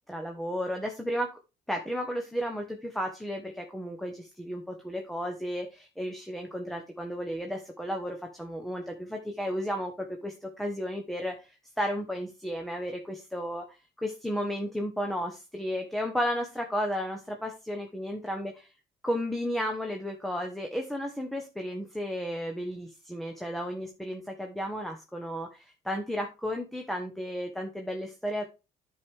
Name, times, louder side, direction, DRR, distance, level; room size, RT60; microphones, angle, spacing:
voice 1, 0.1-1.3 1.7-18.5 19.0-28.4, equal, ahead, 2 dB, 1.1 m, -33 dB
10.5 x 4.8 x 3.5 m, 0.28 s
cardioid pair, 110°, 17 cm